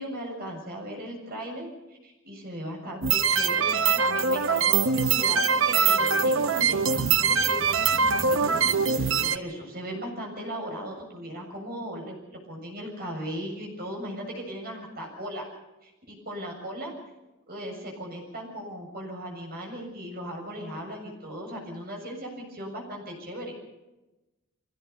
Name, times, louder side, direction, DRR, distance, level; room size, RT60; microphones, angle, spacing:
voice 1, 0.0-15.4 15.8-16.9 17.5-23.6, equal, 45° right, 0 dB, 7.1 m, -37 dB
sound 1, 3.0-9.4, right 5 dB, 60° right, 0.9 m, -23 dB
23.5 x 17.5 x 6.9 m, 1.0 s
head